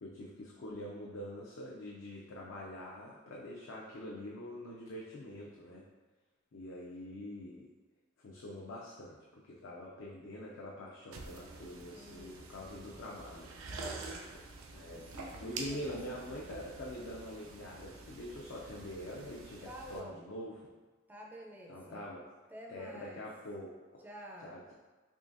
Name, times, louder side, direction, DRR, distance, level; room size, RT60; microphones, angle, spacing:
voice 1, 0.0-5.8 6.5-7.7 8.2-13.5 14.7-15.1 15.4-20.6 21.7-22.3 22.7-24.1 24.4-24.7, left 1 dB, 75° left, -4 dB, 0.5 m, -45 dB
sound 1, 11.1-20.0, right 3 dB, 85° right, 0.4 m, -47 dB
voice 2, 11.9-12.4 13.7-14.3 14.9-16.6 19.7-20.2 21.1-22.0 22.5-23.3 24.0-24.6, equal, 10° right, -1 dB, 0.4 m, -50 dB
3.7 x 3.2 x 2.5 m, 1.3 s
head